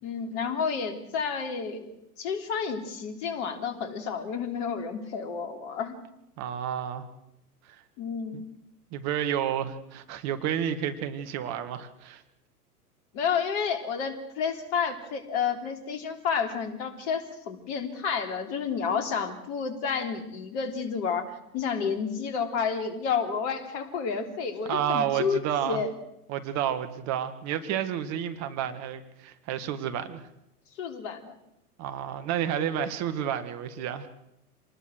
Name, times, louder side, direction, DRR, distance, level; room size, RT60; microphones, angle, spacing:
voice 1, 0.0-1.9 2.2-6.0 8.0-8.4 13.1-25.9 30.8-31.3, left 6 dB, 45° left, 7 dB, 3.5 m, -30 dB
voice 2, 6.4-7.1 8.3-8.4 8.9-12.2 24.7-25.8 26.3-30.3 31.8-34.1, right 9 dB, 35° right, 10 dB, 1.9 m, -30 dB
27.0 x 20.0 x 6.4 m, 0.85 s
figure-of-eight pair, 100°, 46 cm